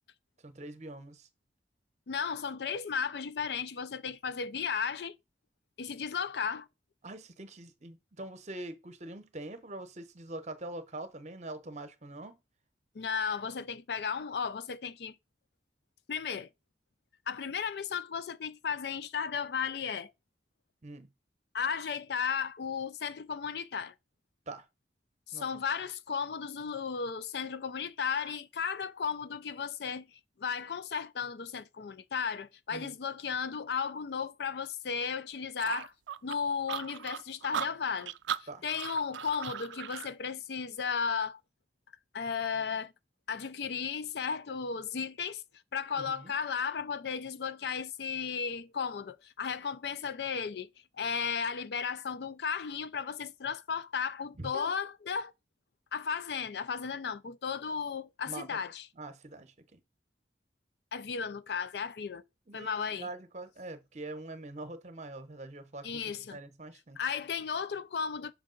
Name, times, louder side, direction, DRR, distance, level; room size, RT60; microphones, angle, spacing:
voice 1, 0.4-1.3 7.0-12.4 20.8-21.1 24.5-24.7 25.3-25.4 32.7-33.0 38.5-38.7 42.6-42.7 46.0-46.3 54.4-54.7 58.3-58.6 59.0-59.8 62.5-66.0 66.3-67.0, right 2 dB, 40° right, 0.8 m, -44 dB
voice 2, 2.1-5.2 5.8-6.7 12.9-15.2 16.1-16.5 17.3-20.1 21.5-23.9 25.3-35.9 36.2-38.1 38.4-41.4 42.1-42.9 43.3-45.4 45.7-50.7 51.0-55.3 55.9-58.9 60.9-62.2 62.5-63.1 65.8-66.4 67.0-68.3, left 6 dB, 65° left, 0.4 m, -35 dB
sound 1, 35.6-40.1, right 9 dB, 85° right, 0.4 m, -37 dB
6.3 x 4.7 x 3.8 m
head